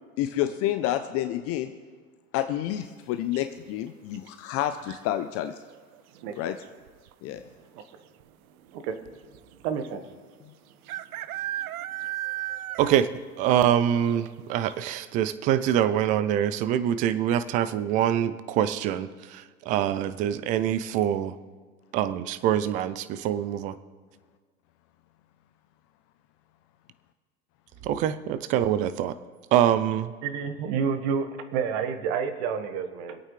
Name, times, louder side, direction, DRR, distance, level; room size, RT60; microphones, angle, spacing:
voice 1, 0.2-1.7 2.3-5.6 6.4-6.6 7.2-7.4 10.4-10.5, left 12 dB, 30° left, 9 dB, 0.6 m, -29 dB
sound 1, 3.3-3.8 5.6-6.0 6.3-6.4 6.6-7.1 7.9-8.0 8.2-8.3 9.8-9.9 10.9-13.2 13.5-13.6 14.1-14.2 14.7-14.8, right 14 dB, 70° right, 0.6 m, -34 dB
voice 2, 6.2-6.5 8.7-9.2 9.6-10.1 30.2-33.2, right 6 dB, 50° right, 8 dB, 1.6 m, -29 dB
voice 3, 12.8-13.1 13.4-21.3 21.9-23.8 27.8-29.1 29.5-30.1, right 10 dB, 20° right, 13 dB, 0.3 m, -25 dB
25.5 x 8.8 x 3.3 m, 1.6 s
hypercardioid pair, 100°, 45 cm